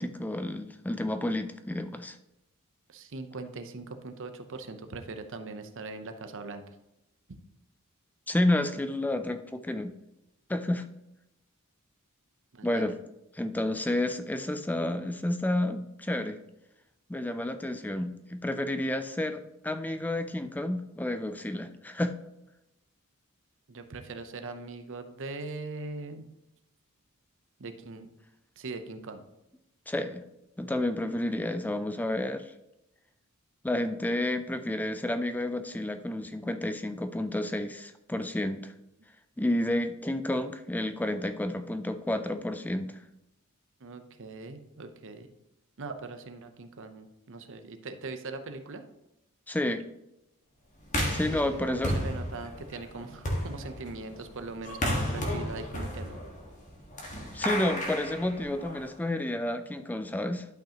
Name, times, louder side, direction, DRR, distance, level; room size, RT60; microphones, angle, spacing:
voice 1, 0.0-2.2 8.3-9.9 10.5-10.8 12.6-13.0 13.3-16.4 17.1-22.2 29.9-30.3 30.6-32.5 33.6-38.7 39.4-43.0 49.5-49.9 51.1-52.0 57.3-60.5, left 1 dB, 5° left, 9 dB, 0.4 m, -30 dB
voice 2, 2.9-6.6 12.5-12.9 23.7-26.3 27.6-28.1 28.6-29.2 43.8-45.3 45.8-48.8 51.3-56.2, right 3 dB, 60° right, 8 dB, 0.7 m, -41 dB
sound 1, 50.9-59.0, equal, 35° left, 1.5 m, -33 dB
11.5 x 5.6 x 2.9 m, 0.90 s
head